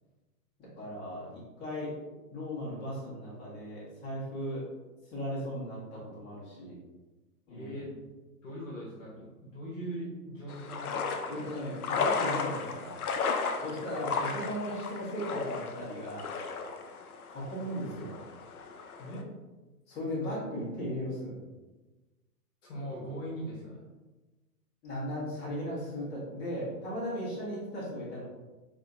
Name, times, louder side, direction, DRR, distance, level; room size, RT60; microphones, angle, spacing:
voice 1, 0.6-1.9 2.3-4.7 5.1-6.8 7.5-7.8 11.3-13.0 13.6-16.3 17.3-18.1 19.9-21.4 24.8-28.2, equal, 20° left, -7 dB, 1.5 m, -37 dB
voice 2, 7.5-8.0 8.4-11.5 13.6-13.8 19.0-19.3 20.2-20.3 22.6-23.8, equal, 55° left, -4 dB, 1.3 m, -41 dB
sound 1, 10.5-19.2, left 5 dB, 70° left, 0.6 m, -35 dB
4.2 x 2.8 x 2.6 m, 1.2 s
figure-of-eight pair, 115°, 46 cm